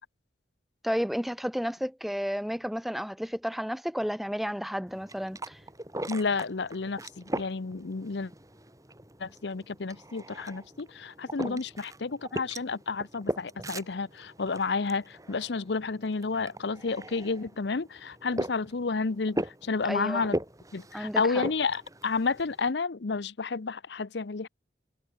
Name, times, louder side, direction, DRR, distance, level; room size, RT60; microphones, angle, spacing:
voice 1, 0.8-5.6 11.4-11.6 19.9-20.3 20.9-21.4, equal, ahead, 0.7 m, -32 dB
sound 1, 4.9-22.7, right 1 dB, 20° right, 4.8 m, -40 dB
voice 2, 6.1-8.3 9.2-20.4 20.7-24.5, left 4 dB, 70° left, 0.7 m, -31 dB
head